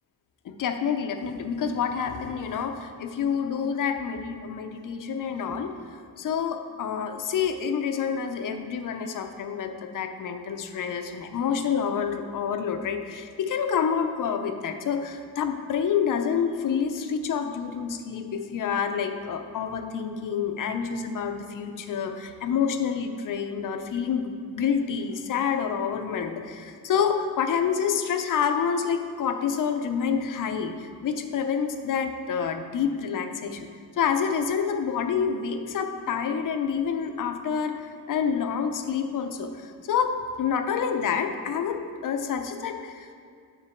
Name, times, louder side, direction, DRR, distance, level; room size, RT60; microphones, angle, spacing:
voice 1, 0.4-5.7 6.2-33.7 34.0-43.1, left 7 dB, 55° left, 6 dB, 0.7 m, -28 dB
9.0 x 4.6 x 4.5 m, 2.3 s
cardioid pair, 105°, 37 cm